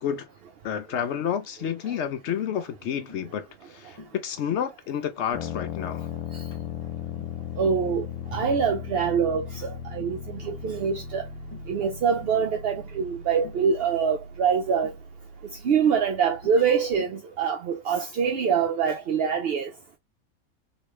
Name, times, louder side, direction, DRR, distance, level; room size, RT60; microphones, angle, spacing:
voice 1, 0.6-6.1, left 8 dB, 65° left, 0.8 m, -30 dB
Tap, 2.3-2.5 3.1-3.3 4.0-4.2 4.5-4.7 5.2-5.4 5.7-6.0 6.5-6.7 7.2-7.4 7.8-8.1 8.7-8.9 9.3-9.6 10.0-10.2 10.6-10.8 11.5-11.8 12.2-12.4 13.4-13.7 14.8-15.0 15.8-16.1 16.4-16.7 17.0-17.2, left 3 dB, 25° left, 0.6 m, -48 dB
sound 1, 5.3-17.0, left 7 dB, 85° left, 1.1 m, -38 dB
voice 2, 7.6-8.1 8.3-11.3 11.7-14.9 15.6-19.7, right 6 dB, 65° right, 0.6 m, -25 dB
3.0 x 3.0 x 3.0 m
omnidirectional pair, 1.5 m